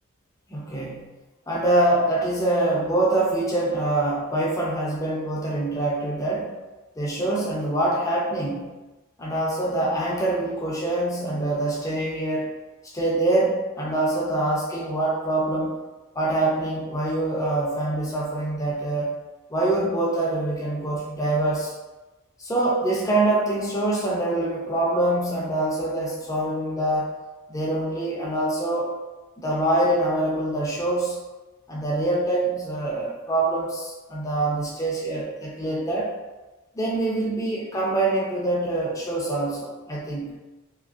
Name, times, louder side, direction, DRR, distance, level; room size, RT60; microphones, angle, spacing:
voice 1, 0.5-1.1 1.5-6.5 7.0-8.7 9.2-12.6 12.9-15.8 16.1-19.1 19.5-21.7 22.4-27.1 27.5-28.9 29.4-31.2 31.7-36.1 36.7-40.3, right 2 dB, 15° left, -4 dB, 0.4 m, -25 dB
2.8 x 2.5 x 2.3 m, 1.2 s
head